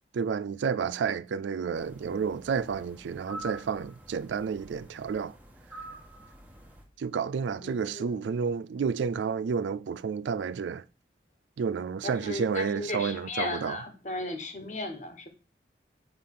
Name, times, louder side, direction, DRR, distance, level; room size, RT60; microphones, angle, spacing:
voice 1, 0.1-5.4 7.0-10.8 11.6-13.8, right 6 dB, 85° right, 0.4 m, -30 dB
sound 1, 1.7-6.8, right 1 dB, 10° right, 1.2 m, -47 dB
voice 2, 7.6-8.2 12.0-15.3, left 2 dB, 40° left, 1.3 m, -36 dB
7.2 x 3.8 x 6.6 m
head